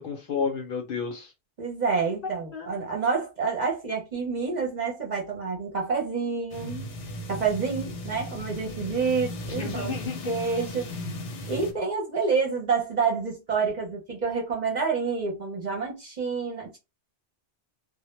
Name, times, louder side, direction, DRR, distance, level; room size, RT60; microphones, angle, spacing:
voice 1, 0.0-1.3 2.5-2.7 9.5-10.3, left 5 dB, 60° left, 0.7 m, -31 dB
voice 2, 1.6-6.9 7.3-9.9 10.2-11.0 11.5-16.8, right 5 dB, 45° right, 0.6 m, -28 dB
sound 1, 6.5-11.7, left 1 dB, 80° left, 1.0 m, -36 dB
2.1 x 2.0 x 3.0 m
omnidirectional pair, 1.2 m